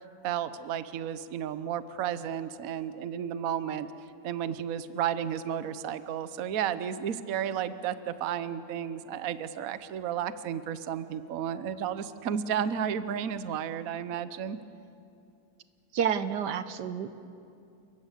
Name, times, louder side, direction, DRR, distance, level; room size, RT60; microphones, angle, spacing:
voice 1, 0.2-3.9 4.2-14.6, right 9 dB, 60° right, 13 dB, 1.2 m, -32 dB
voice 2, 15.9-17.1, right 8 dB, 75° right, 12 dB, 1.4 m, -29 dB
29.5 x 20.5 x 8.3 m, 2.5 s
omnidirectional pair, 1.9 m